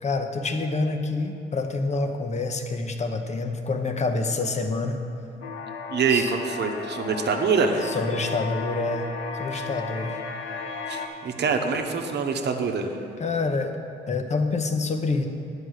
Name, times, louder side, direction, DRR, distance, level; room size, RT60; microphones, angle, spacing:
voice 1, 0.0-5.0 6.1-6.3 7.8-9.1 9.4-10.2 13.2-13.8 14.1-15.3, left 3 dB, 35° left, 6 dB, 0.9 m, -27 dB
sound 1, 5.4-11.1, left 4 dB, 75° left, 0.9 m, -34 dB
voice 2, 5.9-7.9 9.5-9.7 10.9-12.9, right 5 dB, 60° right, 4 dB, 1.0 m, -25 dB
9.8 x 4.9 x 8.0 m, 2.7 s
cardioid pair, 90°, 20 cm